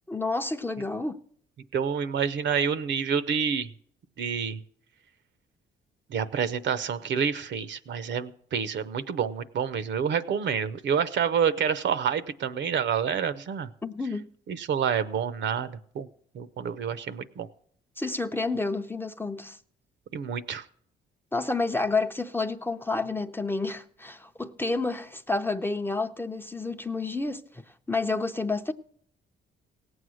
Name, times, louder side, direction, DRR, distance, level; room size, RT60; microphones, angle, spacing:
voice 1, 0.1-1.2 13.8-14.3 18.0-19.6 21.3-28.7, left 3 dB, 10° left, 0.6 m, -30 dB
voice 2, 1.7-3.7 4.2-4.6 6.1-13.7 14.5-16.1 16.3-17.5 20.1-20.7, right 7 dB, 65° right, 0.8 m, -28 dB
17.5 x 7.9 x 6.3 m
cardioid pair, 90°, 20 cm